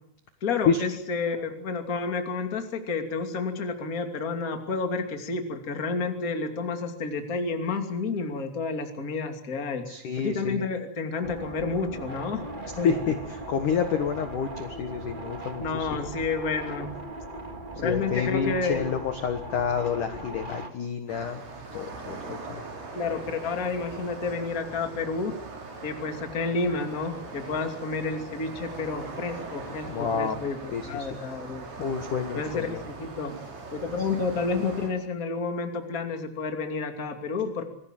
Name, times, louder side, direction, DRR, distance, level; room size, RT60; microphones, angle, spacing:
voice 1, 0.4-9.8 10.2-12.4 12.8-12.9 15.6-17.0 17.7-18.9 22.9-25.4 25.8-31.7 32.4-33.3 33.7-37.6, left 4 dB, 25° left, 5 dB, 2.0 m, -30 dB
voice 2, 9.9-10.6 12.8-16.1 17.8-21.4 21.7-22.6 29.9-30.4 30.7-31.1 31.8-32.8, left 6 dB, 60° left, 7 dB, 2.2 m, -29 dB
sound 1, 11.2-20.7, right 2 dB, 30° right, 0.9 m, -39 dB
sound 2, 21.1-34.9, right 3 dB, 65° right, 7.7 m, -41 dB
26.5 x 20.0 x 7.6 m, 0.75 s
omnidirectional pair, 5.6 m